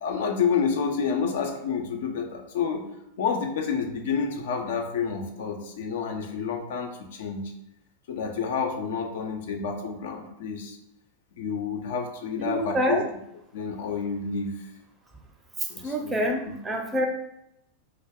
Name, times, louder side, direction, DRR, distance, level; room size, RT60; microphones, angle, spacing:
voice 1, 0.0-2.8 3.2-7.5 8.1-10.8 11.4-13.0 13.5-14.6 15.7-16.2 16.5-16.6, left 6 dB, 55° left, 3 dB, 0.3 m, -29 dB
voice 2, 12.4-13.0 15.8-17.1, equal, 15° right, 2 dB, 0.4 m, -26 dB
2.2 x 2.0 x 3.4 m, 0.81 s
figure-of-eight pair, 90°, 0 cm